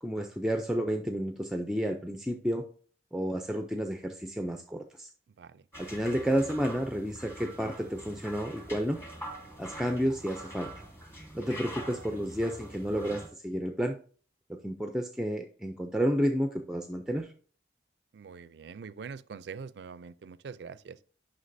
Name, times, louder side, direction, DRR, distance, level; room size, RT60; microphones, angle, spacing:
voice 1, 0.0-2.6 3.1-5.1 5.8-9.0 9.6-10.7 11.3-14.0 14.6-17.3, equal, 5° right, 0.4 m, -31 dB
sound 1, 5.7-13.3, right 1 dB, 15° left, 1.4 m, -44 dB
voice 2, 18.1-21.0, right 5 dB, 65° right, 0.4 m, -44 dB
9.5 x 5.8 x 2.6 m
head